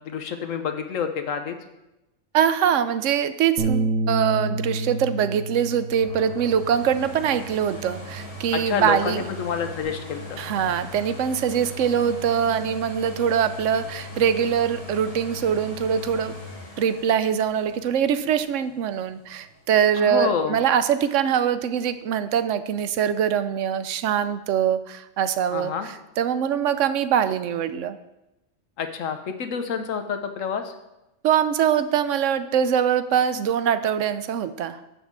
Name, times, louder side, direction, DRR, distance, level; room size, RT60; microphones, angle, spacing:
voice 1, 0.0-1.5 8.5-10.4 20.0-20.6 25.5-25.9 28.8-30.7, left 6 dB, 75° left, 7 dB, 1.2 m, -28 dB
voice 2, 2.3-9.3 10.4-16.3 16.8-28.0 31.2-34.8, right 8 dB, 70° right, 12 dB, 0.9 m, -23 dB
Bass guitar, 3.6-8.0 8.4-9.8, right 2 dB, 90° right, 1.5 m, -30 dB
sound 1, 6.0-19.7 20.2-20.3, left 2 dB, 45° left, 2.2 m, -40 dB
10.5 x 3.7 x 7.3 m, 0.94 s
omnidirectional pair, 1.4 m